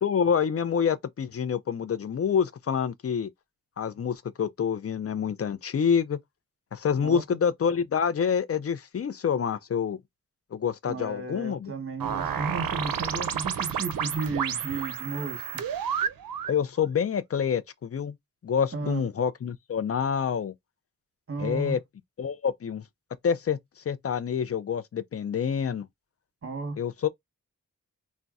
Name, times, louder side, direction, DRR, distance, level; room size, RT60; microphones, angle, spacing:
voice 1, 0.0-3.3 3.8-6.2 6.7-10.0 10.5-11.7 16.5-18.1 18.4-20.5 21.4-21.8 22.2-22.8 23.2-23.6 23.9-25.9 26.8-27.1, left 7 dB, 45° left, 0.4 m, -27 dB
voice 2, 10.9-15.7 18.7-19.1 21.3-21.8 26.4-26.8, right 3 dB, 40° right, 1.0 m, -33 dB
sound 1, 12.0-16.6, right 8 dB, 85° right, 0.5 m, -31 dB
3.9 x 2.1 x 2.3 m
wide cardioid pair, 60°, 34 cm